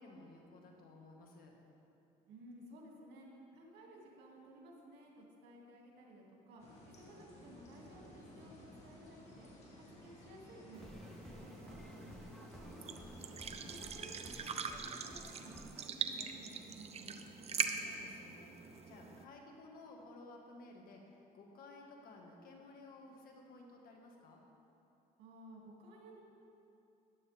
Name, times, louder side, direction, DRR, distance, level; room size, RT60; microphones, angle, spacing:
voice 1, 0.0-1.6 12.0-12.6 17.4-24.4, left 2 dB, 60° left, 1 dB, 1.8 m, -56 dB
voice 2, 2.3-8.5 8.8-9.5 9.8-11.8 12.6-14.5 14.8-17.2 25.2-26.2, right 1 dB, 75° right, -2 dB, 2.6 m, -56 dB
sound 1, 6.6-14.2, left 1 dB, 40° left, 2.5 m, -56 dB
sound 2, 10.7-19.2, right 6 dB, 40° right, 0.7 m, -43 dB
sound 3, 10.8-15.9, left 1 dB, 5° left, 0.3 m, -55 dB
14.0 x 10.0 x 3.6 m, 2.8 s
cardioid pair, 110°, 17 cm